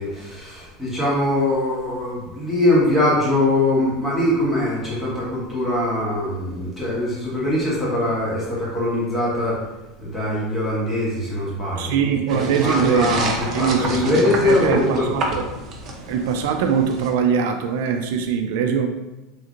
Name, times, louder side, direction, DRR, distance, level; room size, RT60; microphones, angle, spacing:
voice 1, 0.0-9.6 10.0-15.1, left 1 dB, 15° left, -7 dB, 1.4 m, -22 dB
voice 2, 11.8-14.1 14.4-15.4 16.1-18.9, right 7 dB, 75° right, 5 dB, 0.3 m, -22 dB
sound 1, 12.3-17.1, right 2 dB, 40° right, 0.6 m, -29 dB
3.3 x 2.8 x 2.5 m, 1.1 s
supercardioid pair, 120°, 0 cm